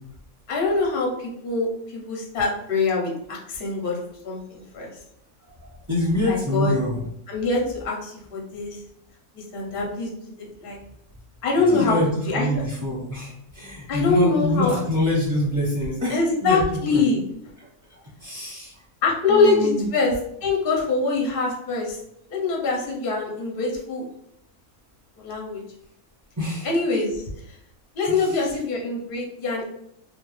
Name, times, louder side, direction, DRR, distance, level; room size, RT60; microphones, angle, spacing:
voice 1, 0.5-4.0 4.2-4.9 6.3-6.8 7.3-8.8 9.3-10.1 10.4-10.8 11.4-12.0 12.3-12.5 13.9-14.7 16.1-17.2 19.0-20.1 20.4-22.0 22.3-24.0 25.2-25.6 26.6-27.3 27.9-29.6, left 3 dB, 50° left, -1 dB, 0.6 m, -24 dB
voice 2, 5.9-7.0 11.6-17.0 17.9-18.7 19.3-19.8 26.4-26.8 28.1-28.5, left 1 dB, 15° right, -10 dB, 0.9 m, -26 dB
2.4 x 2.3 x 3.1 m, 0.76 s
omnidirectional pair, 1.6 m